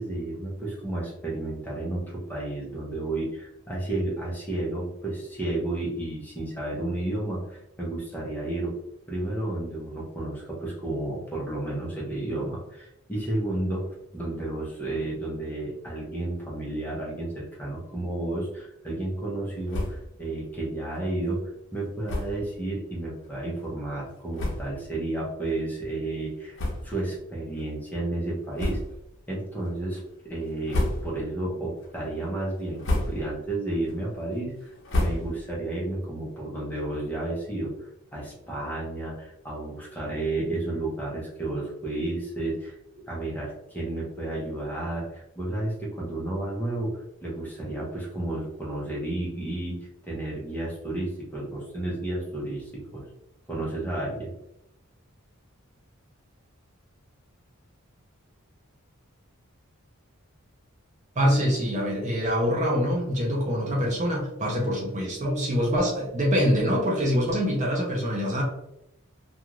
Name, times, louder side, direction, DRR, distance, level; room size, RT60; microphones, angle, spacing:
voice 1, 0.0-8.8 9.1-13.9 14.1-26.6 26.8-28.8 29.3-53.1 53.5-54.3, right 2 dB, 10° left, -5 dB, 0.7 m, -32 dB
sound 1, 19.7-20.2 20.5-20.6 20.9-21.0 22.0-22.5 23.2-23.3 24.0-24.1 24.3-24.9 25.4-25.6 26.5-27.2 27.5-27.7 28.5-29.1 29.6-30.0 30.5-31.4 31.8-32.2 32.6-33.4 33.8-35.6, left 1 dB, 55° left, 0.7 m, -31 dB
voice 2, 61.2-68.4, equal, 35° right, -2 dB, 0.6 m, -25 dB
2.4 x 2.4 x 3.0 m, 0.83 s
head